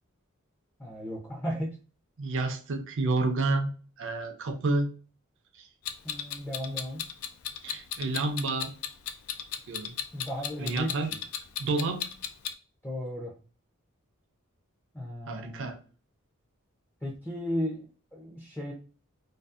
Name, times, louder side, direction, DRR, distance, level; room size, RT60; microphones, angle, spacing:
voice 1, 0.8-1.8 6.0-7.1 10.1-11.1 12.8-13.4 14.9-15.7 17.0-17.9 18.1-18.7, equal, 10° left, -2 dB, 0.4 m, -35 dB
voice 2, 2.2-3.7 4.0-4.9 7.6-8.7 9.7-10.0 10.6-11.1 11.6-12.0 15.3-15.8, right 3 dB, 55° right, 5 dB, 0.5 m, -29 dB
Clock, 5.9-12.5, left 9 dB, 70° left, 0.3 m, -35 dB
2.6 x 2.4 x 2.4 m, 0.37 s
head